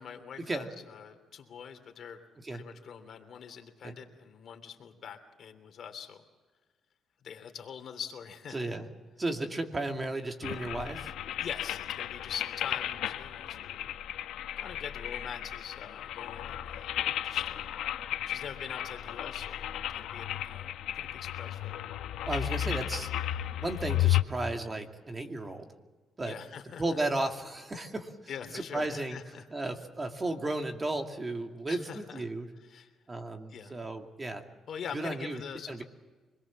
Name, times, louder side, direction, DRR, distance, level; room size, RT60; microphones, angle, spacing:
voice 1, 0.0-2.2 2.5-6.2 7.2-8.8 11.4-14.0 14.6-17.8 18.2-19.6 19.9-21.8 26.2-27.0 28.3-29.4 31.7-32.2 32.6-32.9 33.5-33.8 34.7-35.8, left 7 dB, 60° left, 5 dB, 3.1 m, -44 dB
voice 2, 8.5-8.9 9.2-11.1 20.2-20.3 22.2-23.2 23.5-25.7 26.2-26.4 26.8-28.1 28.5-29.2 29.5-32.5 33.1-34.4 34.9-35.4 35.7-35.8, right 2 dB, 25° right, 4 dB, 2.4 m, -34 dB
sound 1, 10.4-24.2, left 12 dB, 85° left, 1.1 m, -34 dB
26.0 x 21.0 x 7.4 m, 1.3 s
cardioid pair, 90°, 0 cm